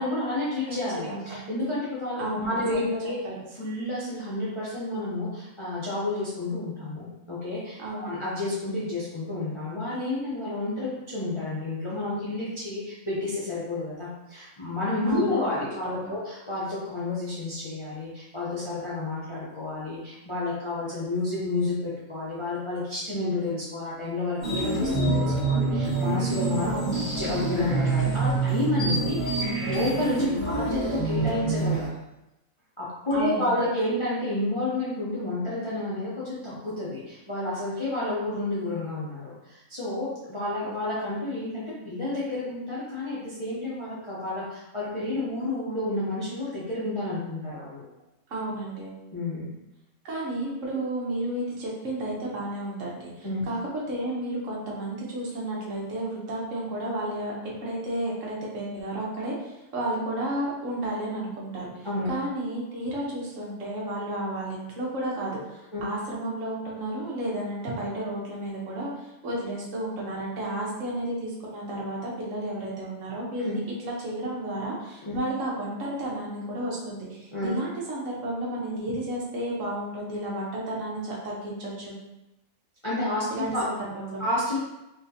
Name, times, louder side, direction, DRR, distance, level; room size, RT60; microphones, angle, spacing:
voice 1, 0.0-3.1 3.5-26.7 27.2-31.9 32.8-47.8 49.1-49.5 53.2-53.4 61.8-62.1 65.7-65.8 73.4-73.6 75.0-75.2 77.3-77.5 82.8-83.3 83.5-83.6 84.2-84.6, left 2 dB, 30° left, -8 dB, 0.6 m, -30 dB
voice 2, 0.7-1.3 2.2-2.5 3.2-3.4 7.8-8.1 15.1-15.4 15.8-16.1 26.6-27.0 33.1-33.6 48.3-49.0 50.0-53.6 53.9-57.3 57.6-81.9 83.3-84.2, right 1 dB, 65° right, -4 dB, 1.2 m, -32 dB
sound 1, 24.4-31.9, right 3 dB, 30° right, 1.6 m, -26 dB
4.2 x 2.4 x 2.7 m, 0.93 s
omnidirectional pair, 1.5 m